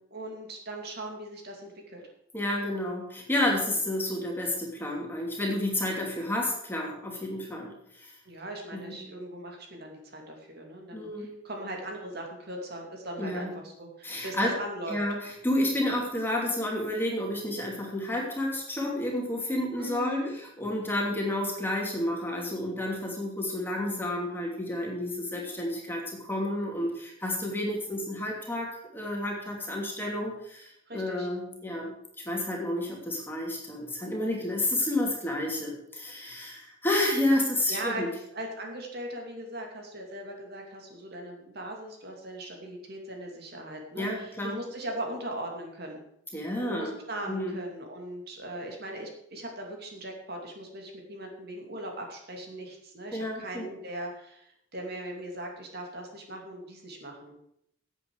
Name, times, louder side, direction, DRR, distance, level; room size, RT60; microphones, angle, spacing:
voice 1, 0.1-2.0 8.2-15.0 19.8-20.3 30.9-31.3 37.7-46.0 46.3-57.3, right 1 dB, 50° right, 1 dB, 2.6 m, -39 dB
voice 2, 2.3-8.1 8.7-9.0 10.9-11.3 13.2-13.5 14.0-14.5 14.9-15.1 15.4-20.2 20.6-31.9 32.2-38.1 43.9-44.6 46.3-46.9 47.3-47.5 53.1-53.7, left 1 dB, 10° left, -1 dB, 2.8 m, -30 dB
16.0 x 8.3 x 4.8 m, 0.74 s
head